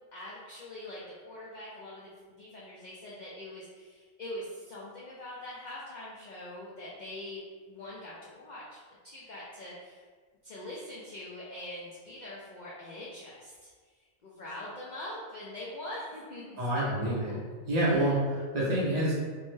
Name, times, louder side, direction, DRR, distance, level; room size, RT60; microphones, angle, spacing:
voice 1, 0.1-7.4 7.7-8.8 9.0-10.0 10.4-13.7 14.2-17.4 17.8-18.2, left 1 dB, 65° left, -6 dB, 0.4 m, -43 dB
voice 2, 16.6-17.4 17.7-19.1, right 1 dB, 50° right, -7 dB, 0.5 m, -27 dB
2.6 x 2.1 x 3.1 m, 1.5 s
omnidirectional pair, 1.3 m